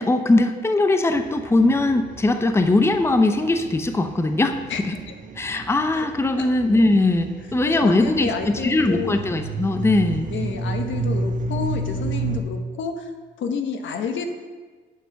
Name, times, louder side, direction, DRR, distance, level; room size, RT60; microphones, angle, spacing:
voice 1, 0.0-4.6 4.9-5.0 5.4-10.3, left 2 dB, 15° left, 7 dB, 0.7 m, -20 dB
sound 1, 1.1-12.4, right 3 dB, 40° right, 1.4 m, -32 dB
voice 2, 4.7-5.1 5.9-6.0 6.4-6.5 7.7-9.2 10.3-13.1 13.4-14.3, left 6 dB, 70° left, 5 dB, 1.3 m, -29 dB
11.5 x 6.1 x 5.8 m, 1.4 s
cardioid pair, 90°, 20 cm